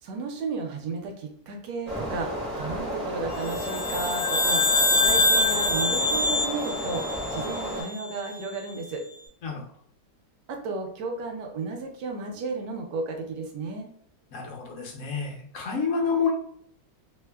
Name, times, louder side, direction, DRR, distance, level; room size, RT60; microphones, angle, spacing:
voice 1, 0.0-9.0 10.5-13.9, right 3 dB, 75° right, 2 dB, 1.2 m, -33 dB
sound 1, 1.9-7.8, equal, 10° right, 0.5 m, -32 dB
sound 2, 3.5-8.0, left 3 dB, 80° left, 1.2 m, -25 dB
voice 2, 14.3-16.3, left 5 dB, 60° left, -2 dB, 0.9 m, -28 dB
3.1 x 2.0 x 2.2 m, 0.64 s
omnidirectional pair, 1.9 m